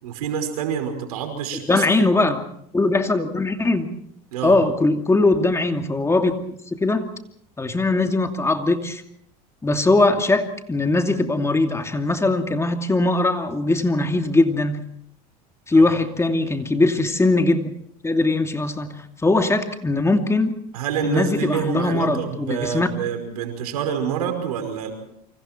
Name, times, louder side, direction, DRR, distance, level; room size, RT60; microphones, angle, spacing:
voice 1, 0.0-2.2 4.3-4.6 15.7-16.0 20.7-24.9, right 7 dB, 90° right, 6 dB, 5.3 m, -27 dB
voice 2, 1.7-2.4 2.7-3.9 4.4-6.3 6.7-7.1 7.6-9.0 9.6-14.8 15.7-17.7 18.0-18.9 19.2-20.5 21.0-22.9, left 2 dB, 15° left, 5 dB, 2.6 m, -20 dB
28.5 x 25.0 x 4.5 m, 0.69 s
supercardioid pair, 95°, 19 cm